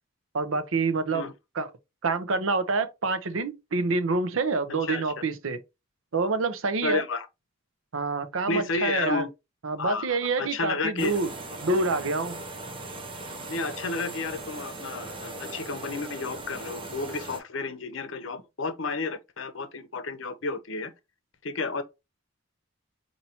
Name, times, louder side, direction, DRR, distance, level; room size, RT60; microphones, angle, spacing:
voice 1, 0.3-1.7 2.0-5.6 6.1-7.0 7.9-9.2 9.6-11.3 11.6-12.4, right 3 dB, 80° right, 0.7 m, -27 dB
voice 2, 4.8-5.1 6.8-7.3 8.5-9.3 9.8-11.1 13.5-20.9 21.4-21.8, left 3 dB, 65° left, 0.7 m, -31 dB
sound 1, 11.0-17.4, right 2 dB, 25° right, 0.8 m, -39 dB
5.5 x 2.8 x 2.8 m
head